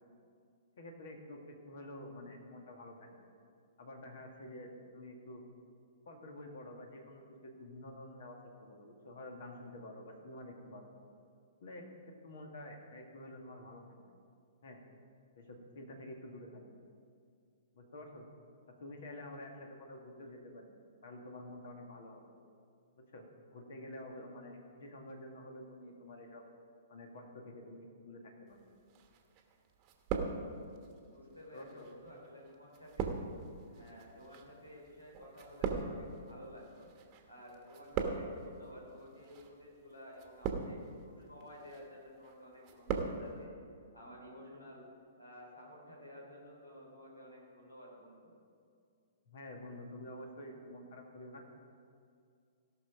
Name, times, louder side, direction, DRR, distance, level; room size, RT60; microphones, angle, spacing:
voice 1, 0.8-3.1 3.8-5.4 6.1-10.9 11.6-11.9 12.2-14.0 14.6-14.8 15.4-16.7 17.7-18.3 18.7-20.7 21.0-22.2 23.1-23.3 23.5-26.4 26.9-28.6 31.5-31.9 49.3-51.4, left 1 dB, 55° left, 2 dB, 1.9 m, -49 dB
sound 1, 28.9-29.5 29.8-30.9 31.6-37.2 37.5-38.5 39.2-39.5 40.1-41.0 41.4-41.8 42.2-43.2 43.4-43.5, right 5 dB, 30° right, 1.1 m, -39 dB
voice 2, 31.0-33.2 33.7-36.9 37.3-43.5 43.9-44.9 45.2-48.3, equal, 85° left, -2 dB, 3.3 m, -53 dB
16.5 x 6.2 x 5.0 m, 2.3 s
figure-of-eight pair, 115°, 0 cm